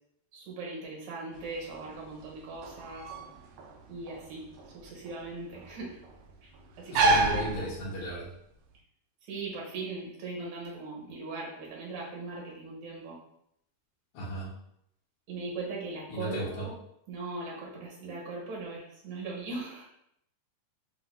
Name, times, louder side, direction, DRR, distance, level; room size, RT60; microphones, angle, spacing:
voice 1, 0.3-3.1 3.9-4.5 4.7-6.0 6.4-6.5 6.8-7.7 9.3-13.2 15.3-16.7 17.1-19.9, right 3 dB, 65° right, -3 dB, 2.3 m, -39 dB
sound 1, 1.3-8.3, right 3 dB, 80° right, 2.0 m, -31 dB
voice 2, 6.9-8.3 14.1-14.5 16.1-16.7, equal, 85° left, -4 dB, 3.1 m, -35 dB
7.6 x 2.8 x 2.2 m, 0.74 s
omnidirectional pair, 4.0 m